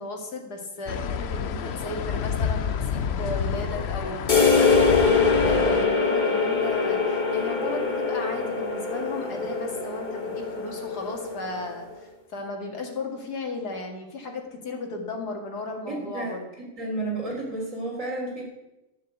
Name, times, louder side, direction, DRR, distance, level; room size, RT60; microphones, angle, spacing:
voice 1, 0.0-16.5, left 2 dB, 85° left, 2 dB, 2.7 m, -35 dB
sound 1, 0.9-5.9, left 7 dB, 55° left, 0.8 m, -29 dB
sound 2, 4.3-11.8, left 4 dB, 30° left, 1.7 m, -23 dB
voice 2, 15.9-16.3 16.8-18.4, right 2 dB, 55° right, -2 dB, 4.1 m, -31 dB
12.5 x 7.3 x 8.0 m, 0.97 s
omnidirectional pair, 1.7 m